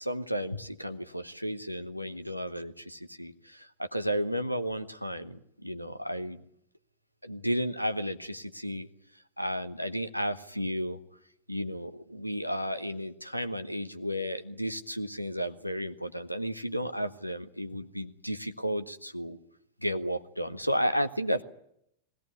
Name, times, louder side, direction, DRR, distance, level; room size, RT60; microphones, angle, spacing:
voice 1, 0.0-6.4 7.2-8.9 9.4-11.0 11.5-19.4 19.8-21.4, equal, 90° left, 10 dB, 1.1 m, -33 dB
20.5 x 17.0 x 9.6 m, 0.75 s
figure-of-eight pair, 90°, 0 cm